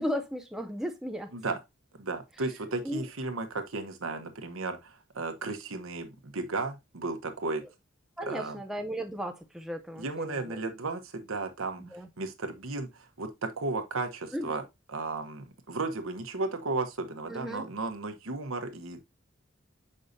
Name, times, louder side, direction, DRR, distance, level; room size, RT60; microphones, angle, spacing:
voice 1, 0.0-1.4 2.8-3.1 8.2-10.6 11.8-12.1 14.3-14.5 17.3-17.7, equal, ahead, 0.5 m, -35 dB
voice 2, 1.9-7.6 8.3-8.6 10.0-14.6 14.9-19.0, right 3 dB, 90° right, 1.1 m, -34 dB
6.7 x 5.4 x 2.6 m
head